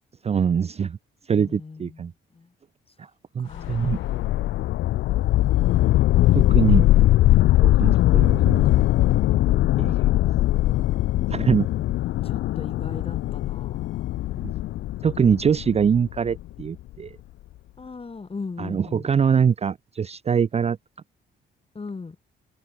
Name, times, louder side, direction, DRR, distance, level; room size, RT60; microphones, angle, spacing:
voice 1, 0.2-1.0 1.3-2.1 3.4-4.0 6.3-6.8 7.6-8.9 9.8-10.1 11.3-11.7 14.4-14.5 15.0-17.1 18.6-20.8, right 7 dB, 30° right, 0.5 m, -23 dB
voice 2, 1.3-2.5 3.4-4.2 6.2-6.5 11.8-11.9 12.2-14.1 17.8-19.1 21.7-22.2, left 4 dB, 30° left, 6.8 m, -39 dB
sound 1, 3.5-16.6, left 15 dB, 75° left, 0.5 m, -21 dB
cardioid pair, 90°, 20 cm